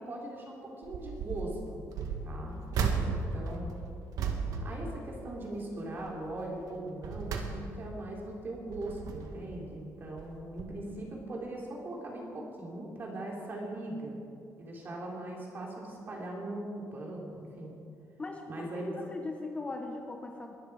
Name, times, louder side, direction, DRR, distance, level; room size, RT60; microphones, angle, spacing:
voice 1, 0.0-1.8 2.2-2.6 3.1-4.0 4.6-14.2 14.6-17.7 18.5-18.9, right 1 dB, 35° right, -2 dB, 3.5 m, -40 dB
sound 1, 0.8-1.5 1.9-5.6 6.0-6.3 6.8-8.0 8.5-9.5 10.2-10.3 10.6-10.7, right 5 dB, 80° right, 1.8 m, -35 dB
voice 2, 2.8-3.3 18.2-20.5, left 3 dB, 20° left, 4 dB, 1.0 m, -40 dB
21.5 x 13.5 x 4.9 m, 2.5 s
cardioid pair, 170°, 6 cm